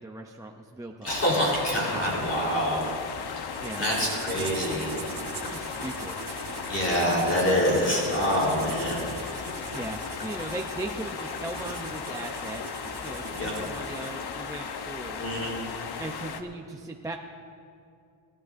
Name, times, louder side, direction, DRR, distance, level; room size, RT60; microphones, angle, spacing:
voice 1, 0.0-1.2 3.6-3.9 5.5-6.2 9.7-12.6 13.0-15.2 16.0-17.2, right 2 dB, 10° right, 1 dB, 0.4 m, -38 dB
voice 2, 1.0-2.9 3.2-4.9 6.7-9.2 13.3-13.5 15.2-15.5, equal, 35° left, -4 dB, 3.5 m, -26 dB
sound 1, 1.1-16.4, left 6 dB, 60° left, 0.9 m, -36 dB
sound 2, 3.5-14.2, right 5 dB, 50° right, 1.1 m, -41 dB
29.5 x 12.0 x 2.5 m, 2.4 s
wide cardioid pair, 170°, 44 cm